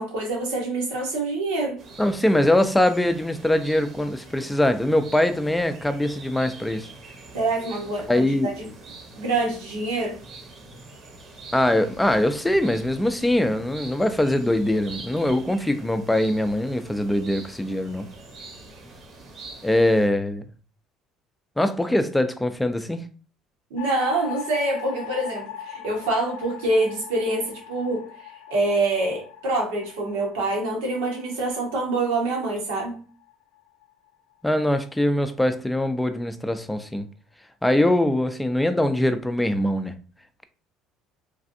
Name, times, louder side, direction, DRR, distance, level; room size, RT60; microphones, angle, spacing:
voice 1, 0.0-1.8 7.3-8.7 9.2-10.2 23.7-33.0, right 2 dB, 90° right, 1.2 m, -26 dB
sound 1, 1.8-20.1, right 3 dB, 50° right, 0.9 m, -44 dB
voice 2, 2.0-6.9 8.1-8.5 11.5-18.1 19.6-20.4 21.6-23.0 34.4-37.1 37.6-39.9, left 1 dB, 10° left, 0.4 m, -22 dB
sound 2, 23.8-34.1, left 9 dB, 75° left, 0.5 m, -40 dB
3.2 x 2.5 x 2.6 m
supercardioid pair, 90°, 0 cm